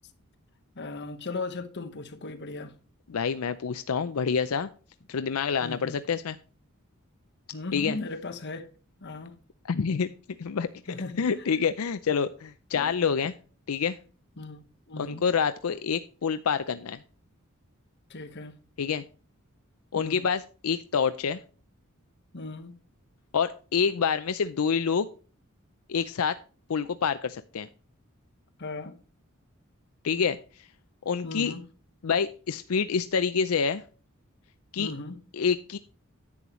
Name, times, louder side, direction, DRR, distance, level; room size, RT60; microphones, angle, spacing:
voice 1, 0.7-2.7 5.6-6.0 7.5-8.7 9.0-9.3 10.9-11.2 12.7-12.9 14.4-15.2 18.1-18.6 20.0-20.3 22.3-22.7 28.6-29.0 31.2-31.6 34.8-35.2, left 3 dB, 55° left, 1.2 m, -37 dB
voice 2, 3.1-4.7 5.1-6.4 7.7-8.0 9.6-10.1 10.4-10.7 11.2-13.3 13.7-14.0 15.0-17.0 18.8-19.0 19.9-21.4 23.3-25.1 25.9-26.4 26.7-27.7 30.0-30.4 31.1-31.5 32.0-33.8 34.7-34.9 35.3-35.8, left 6 dB, 85° left, 0.5 m, -27 dB
10.5 x 8.6 x 3.1 m
head